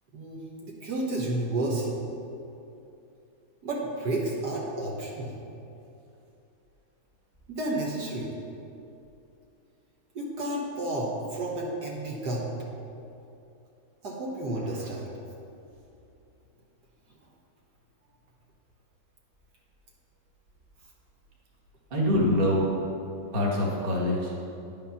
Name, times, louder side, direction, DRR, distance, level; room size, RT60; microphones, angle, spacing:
voice 1, 0.1-2.0 3.6-5.3 7.5-8.3 10.1-12.5 14.0-15.1, right 1 dB, 60° right, -3 dB, 1.7 m, -31 dB
voice 2, 21.9-22.7 23.3-24.5, left 1 dB, 30° right, -3 dB, 1.3 m, -25 dB
10.5 x 5.6 x 5.7 m, 2.7 s
omnidirectional pair, 2.1 m